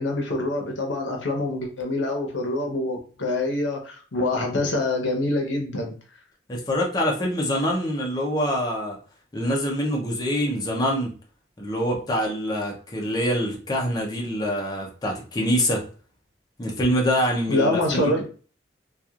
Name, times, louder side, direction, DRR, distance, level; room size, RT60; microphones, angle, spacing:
voice 1, 0.0-5.9 17.5-18.3, left 2 dB, 90° left, 1 dB, 0.8 m, -25 dB
voice 2, 6.5-9.0 9.3-11.1 11.6-15.8 16.6-18.1, equal, 20° left, -1 dB, 0.5 m, -25 dB
2.9 x 2.3 x 2.4 m, 0.39 s
head